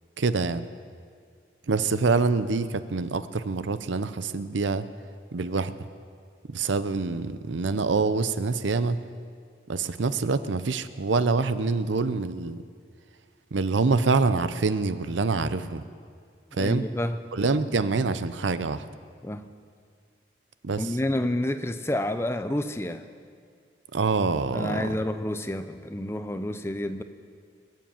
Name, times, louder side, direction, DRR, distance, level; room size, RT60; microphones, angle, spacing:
voice 1, 0.2-0.6 1.7-4.9 5.3-5.7 6.5-9.0 9.7-12.6 13.5-15.8 16.5-16.9 17.3-18.8 20.6-20.8 23.9-24.9, right 4 dB, 90° right, 13 dB, 0.6 m, -25 dB
voice 2, 16.5-17.2 19.2-19.5 20.8-23.1 24.5-27.0, left 1 dB, 15° left, 9 dB, 0.5 m, -29 dB
22.5 x 7.5 x 7.2 m, 2.1 s
head